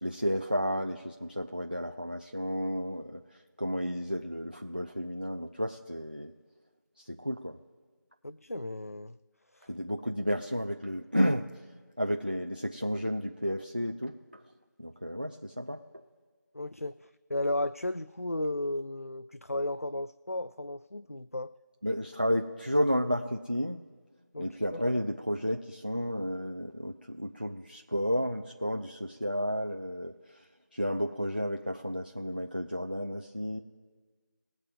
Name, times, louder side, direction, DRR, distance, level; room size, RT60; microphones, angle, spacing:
voice 1, 0.0-6.3 7.0-7.6 9.7-11.5 12.0-14.2 14.8-15.8 21.8-23.8 24.4-33.6, equal, 30° right, 3 dB, 0.5 m, -32 dB
voice 2, 8.2-9.2 9.5-9.7 16.5-21.5 24.3-24.8, left 1 dB, 50° left, 13 dB, 0.4 m, -34 dB
21.0 x 8.4 x 2.3 m, 1.4 s
figure-of-eight pair, 180°, 10 cm